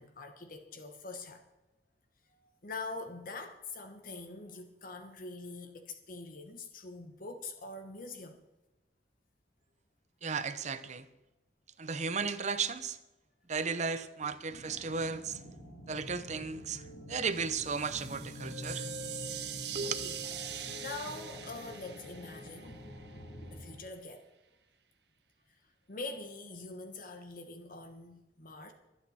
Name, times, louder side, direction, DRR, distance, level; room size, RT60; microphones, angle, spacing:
voice 1, 0.0-1.4 2.6-8.4 19.8-20.2 20.4-22.9 23.5-24.2 25.9-28.7, left 3 dB, 55° left, 1.2 m, -44 dB
voice 2, 10.2-11.1 11.8-13.0 13.5-15.4 15.9-16.8 17.1-18.9 19.7-19.9, right 5 dB, 40° right, 0.8 m, -34 dB
sound 1, 14.5-23.8, left 1 dB, 75° left, 3.7 m, -46 dB
sound 2, 17.3-23.2, right 10 dB, 75° right, 1.1 m, -43 dB
24.5 x 8.4 x 4.3 m
head